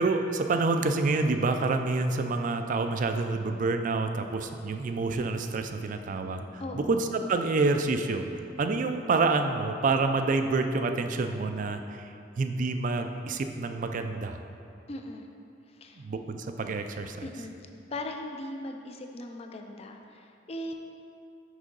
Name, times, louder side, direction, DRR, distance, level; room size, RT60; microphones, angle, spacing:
voice 1, 0.0-8.2 8.6-14.4 16.0-17.3, right 3 dB, 45° right, 7 dB, 0.4 m, -28 dB
voice 2, 6.6-7.0 14.9-15.3 15.7-16.1 17.2-17.5 17.9-20.7, left 1 dB, 35° left, 4 dB, 0.5 m, -39 dB
6.2 x 5.5 x 3.9 m, 2.6 s
head